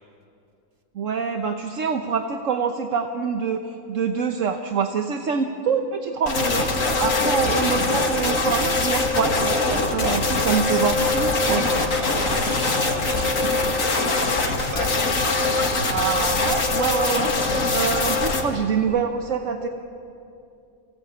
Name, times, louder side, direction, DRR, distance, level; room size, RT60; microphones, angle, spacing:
voice 1, 0.9-3.6 3.9-11.7 15.9-19.7, right 6 dB, 65° right, 5 dB, 1.3 m, -25 dB
sound 1, 6.3-18.4, left 3 dB, 75° left, 2.5 m, -22 dB
voice 2, 11.9-14.9, right 2 dB, 40° right, 2 dB, 2.3 m, -36 dB
25.5 x 17.0 x 8.6 m, 2.6 s
omnidirectional pair, 1.4 m